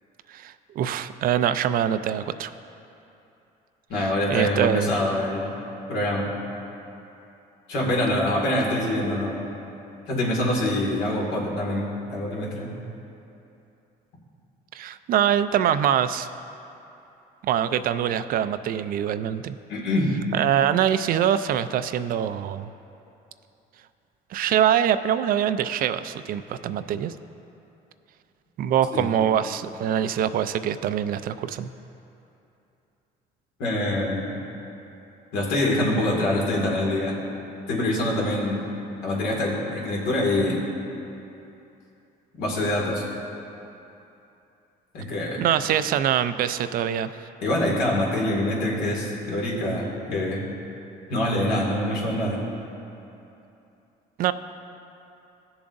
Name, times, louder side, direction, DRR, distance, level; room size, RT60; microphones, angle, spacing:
voice 1, 0.3-2.5 4.0-4.9 14.7-16.3 17.4-19.6 20.3-22.7 24.3-27.1 28.6-31.7 45.4-47.3 54.2-54.3, right 10 dB, 60° right, 12 dB, 0.4 m, -24 dB
voice 2, 3.9-5.5 5.9-6.4 7.7-9.4 10.1-12.7 19.7-20.2 28.9-29.1 33.6-34.3 35.3-37.2 37.7-38.7 39.0-40.7 42.4-43.0 44.9-45.4 47.4-50.5 51.1-52.4, left 1 dB, 85° left, -3 dB, 2.2 m, -25 dB
16.5 x 7.0 x 2.6 m, 2.8 s
cardioid pair, 110°, 17 cm